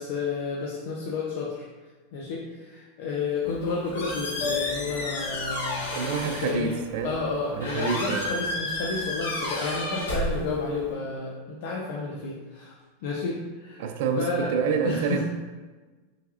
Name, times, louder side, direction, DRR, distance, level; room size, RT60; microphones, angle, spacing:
voice 1, 0.0-1.5 2.1-5.9 6.2-6.7 7.0-13.9 14.2-14.5 14.8-15.2, left 3 dB, 65° left, -4 dB, 0.5 m, -31 dB
Squeak, 3.4-10.9, left 1 dB, 90° left, 1.0 m, -32 dB
Piano, 4.3-10.3, left 6 dB, 35° left, 0.9 m, -39 dB
voice 2, 5.9-7.2 7.5-8.3 13.8-15.2, right 5 dB, 70° right, 7 dB, 0.4 m, -27 dB
3.3 x 3.2 x 2.4 m, 1.3 s
supercardioid pair, 135°, 0 cm